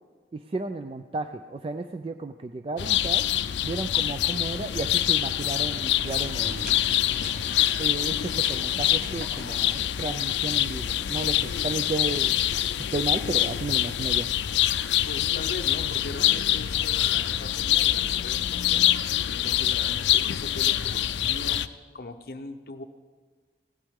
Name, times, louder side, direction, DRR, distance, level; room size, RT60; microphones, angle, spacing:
voice 1, 0.3-3.3 3.6-6.8 7.8-12.4 12.9-14.3, right 3 dB, 30° right, 8 dB, 0.3 m, -33 dB
sound 1, 2.8-21.7, left 12 dB, 90° left, 0.4 m, -25 dB
sound 2, 4.3-10.4, right 1 dB, 55° right, 1.5 m, -45 dB
voice 2, 15.1-18.9 19.3-21.6 21.9-22.8, left 2 dB, 55° left, 7 dB, 0.7 m, -40 dB
16.5 x 11.5 x 3.6 m, 1.6 s
head